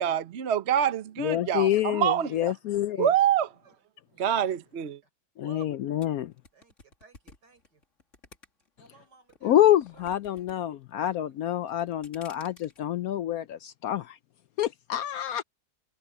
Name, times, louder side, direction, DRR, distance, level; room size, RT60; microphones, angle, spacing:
voice 1, 0.0-2.5 3.0-3.5 4.2-5.0, right 9 dB, 50° right, 0.9 m, -26 dB
voice 2, 1.2-3.1 5.4-6.3 9.4-14.2 14.6-15.4, left 12 dB, 70° left, 0.9 m, -27 dB
voice 3, 2.9-3.3 3.6-3.7 4.2-4.5 5.4-5.7 6.5-7.8 8.8-10.5 10.9-11.5 12.3-12.5, right 7 dB, 75° right, 5.3 m, -56 dB
sound 1, 6.0-8.9 9.3-10.6 10.8-11.3 11.7-12.8, left 3 dB, 45° left, 2.8 m, -53 dB
omnidirectional pair, 1.8 m